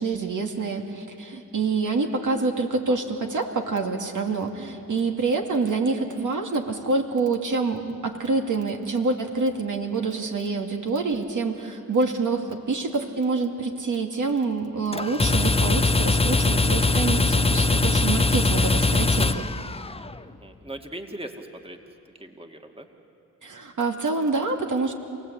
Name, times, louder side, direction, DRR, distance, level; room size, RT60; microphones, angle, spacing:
voice 1, 0.0-19.5 23.4-24.9, right 3 dB, 65° right, 2 dB, 2.4 m, -26 dB
sound 1, 14.9-20.1, left 3 dB, 20° left, 0.8 m, -21 dB
voice 2, 20.2-21.8 22.2-22.9, right 1 dB, 15° right, 4 dB, 2.3 m, -40 dB
27.5 x 18.0 x 8.4 m, 2.9 s
cardioid pair, 50°, 33 cm